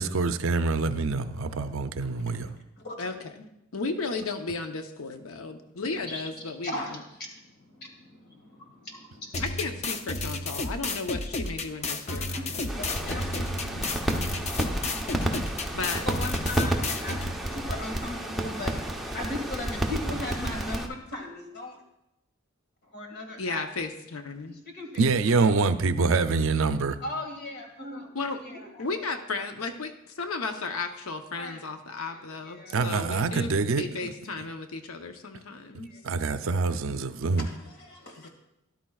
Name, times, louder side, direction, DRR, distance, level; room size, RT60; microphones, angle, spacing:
voice 1, 0.0-2.6 25.0-27.0 32.7-34.1 36.0-37.5, right 4 dB, 70° right, 0.5 m, -25 dB
voice 2, 1.3-1.7 2.0-3.2 6.1-9.5 11.4-13.2 16.0-17.2 17.5-21.8 22.8-23.6 24.5-25.5 27.0-29.1 31.3-31.7 32.0-32.8 35.8-36.0 37.4-38.3, left 1 dB, 50° left, 2.0 m, -39 dB
voice 3, 3.4-7.0 9.4-13.9 15.7-16.1 23.4-24.5 28.1-28.4 28.8-33.5 33.8-35.9 38.2-38.3, left 3 dB, 90° left, 0.8 m, -34 dB
sound 1, 9.3-17.3, left 2 dB, 30° left, 0.6 m, -32 dB
sound 2, 12.7-20.9, right 1 dB, ahead, 0.8 m, -31 dB
13.0 x 11.5 x 2.4 m
head